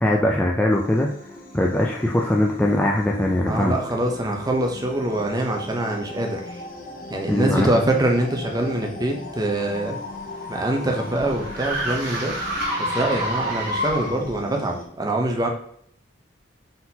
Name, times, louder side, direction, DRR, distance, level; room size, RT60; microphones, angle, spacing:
voice 1, 0.0-1.1 1.5-3.8 7.3-7.8, left 1 dB, 5° left, -1 dB, 0.3 m, -21 dB
sound 1, 0.7-14.9, left 2 dB, 50° left, 0.7 m, -39 dB
voice 2, 3.5-6.6 7.1-10.0 10.5-12.3 12.8-15.5, right 1 dB, 20° right, 2 dB, 0.7 m, -24 dB
sound 2, 9.8-14.4, equal, 55° right, 1.5 m, -28 dB
4.0 x 4.0 x 2.8 m, 0.65 s
head